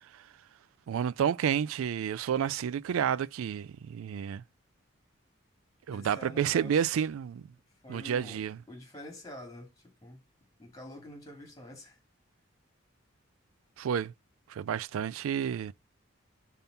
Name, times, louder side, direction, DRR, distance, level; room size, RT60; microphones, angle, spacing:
voice 1, 0.9-4.4 5.9-7.5 7.9-8.6 13.8-14.1 14.5-15.7, right 8 dB, 90° right, 0.3 m, -30 dB
voice 2, 5.9-6.9 7.8-10.2 10.6-12.0, left 1 dB, 15° left, 2.7 m, -47 dB
5.7 x 3.7 x 5.3 m
head